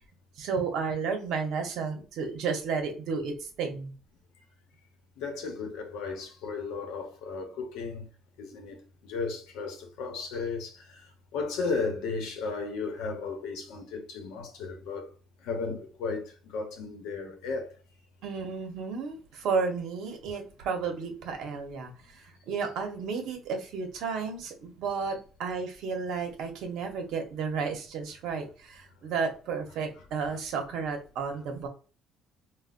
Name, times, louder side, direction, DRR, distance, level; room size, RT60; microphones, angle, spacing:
voice 1, 0.4-3.9 18.2-31.7, right 5 dB, 65° right, 0.9 m, -32 dB
voice 2, 5.2-8.1 8.4-15.1 15.4-17.7 30.3-30.4, left 4 dB, 80° left, 0.9 m, -35 dB
4.0 x 2.2 x 2.5 m
cardioid pair, 150°, 0 cm